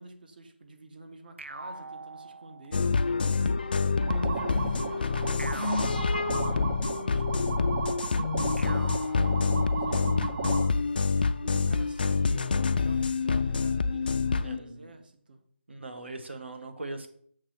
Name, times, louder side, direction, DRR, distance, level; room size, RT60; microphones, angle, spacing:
voice 1, 0.0-3.0 3.7-8.0 8.7-10.6 11.4-15.4, right 2 dB, 50° right, 5 dB, 1.1 m, -47 dB
sound 1, 1.4-3.0 5.4-7.0 8.6-10.1, right 2 dB, 85° right, 0.4 m, -43 dB
sound 2, 2.7-14.6, left 4 dB, 50° left, 0.4 m, -27 dB
sound 3, 4.0-10.7, right 4 dB, 30° right, 0.6 m, -34 dB
voice 2, 14.4-14.9 15.7-17.1, right 2 dB, 70° right, 6 dB, 1.2 m, -40 dB
6.5 x 3.2 x 5.9 m, 0.62 s
figure-of-eight pair, 155°, 6 cm